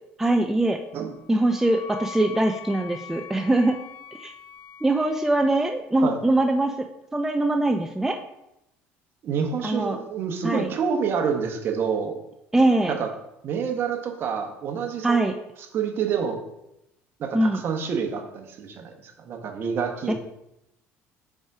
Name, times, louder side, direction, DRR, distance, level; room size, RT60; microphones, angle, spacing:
voice 1, 0.2-0.8 1.3-3.8 4.2-4.3 4.8-8.2 9.6-10.0 10.4-10.7 12.5-13.0 15.0-15.3 17.3-17.6 20.1-20.2, right 2 dB, 5° right, 4 dB, 0.4 m, -22 dB
Wind instrument woodwind instrument, 0.9-5.7, left 7 dB, 60° left, 0.6 m, -43 dB
voice 2, 9.2-12.2 12.9-13.1 13.4-15.3 15.7-16.4 17.2-20.1, right 6 dB, 50° right, 4 dB, 1.1 m, -28 dB
5.4 x 4.7 x 4.8 m, 0.87 s
cardioid pair, 110°, 5 cm